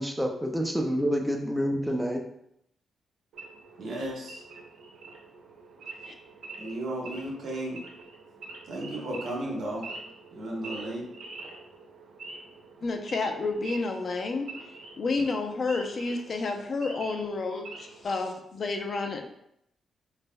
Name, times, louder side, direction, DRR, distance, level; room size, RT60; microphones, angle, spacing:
voice 1, 0.0-2.2, equal, ahead, 1 dB, 0.5 m, -28 dB
Wild animals / Idling, 3.3-18.1, right 3 dB, 80° right, 0.8 m, -45 dB
voice 2, 3.8-4.4 6.6-7.8 8.7-9.9 10.3-11.0, right 1 dB, 65° right, -2 dB, 1.3 m, -34 dB
voice 3, 12.8-14.5 15.0-19.2, left 3 dB, 50° left, 4 dB, 0.5 m, -30 dB
4.9 x 3.3 x 2.2 m, 0.75 s
cardioid pair, 100°, 0 cm